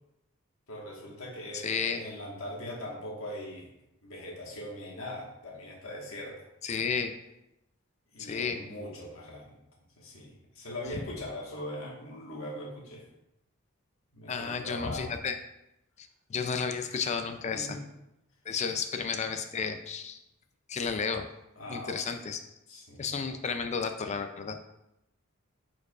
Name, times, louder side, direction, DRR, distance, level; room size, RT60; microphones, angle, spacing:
voice 1, 0.7-3.7 4.0-6.5 8.1-9.5 10.0-13.1 14.1-15.1 16.8-17.0 17.5-17.8 21.6-22.0 22.7-23.1, left 1 dB, 75° left, -3 dB, 1.5 m, -41 dB
voice 2, 1.5-2.0 6.6-7.1 8.2-8.6 14.3-15.4 16.0-17.8 18.5-20.2 20.7-21.3 21.7-22.4 23.0-24.6, left 5 dB, 35° left, 7 dB, 0.4 m, -32 dB
9.2 x 4.7 x 2.4 m, 0.87 s
head